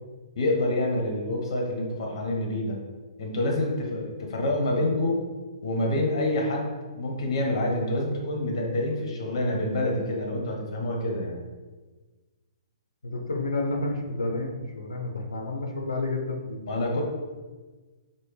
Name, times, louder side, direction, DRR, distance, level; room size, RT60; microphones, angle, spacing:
voice 1, 0.4-2.8 3.2-5.2 5.6-11.4 16.7-17.0, left 1 dB, 50° left, 0 dB, 1.0 m, -27 dB
voice 2, 13.0-14.5 14.7-17.0, left 2 dB, 70° left, 2 dB, 0.7 m, -30 dB
6.0 x 2.1 x 3.3 m, 1.3 s
figure-of-eight pair, 125°, 3 cm